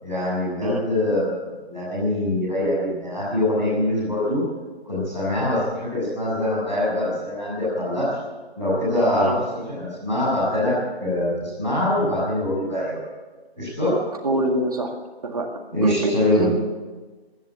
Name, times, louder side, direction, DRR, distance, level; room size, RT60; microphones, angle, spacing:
voice 1, 0.0-4.4 4.8-5.6 5.9-8.2 8.5-10.7 11.0-13.0 13.5-13.9 15.7-16.5, left 1 dB, ahead, -21 dB, 0.8 m, -24 dB
voice 2, 14.2-14.9 15.2-16.5, right 2 dB, 35° right, 3 dB, 1.9 m, -25 dB
15.0 x 11.0 x 8.3 m, 1.3 s
figure-of-eight pair, 165°, 32 cm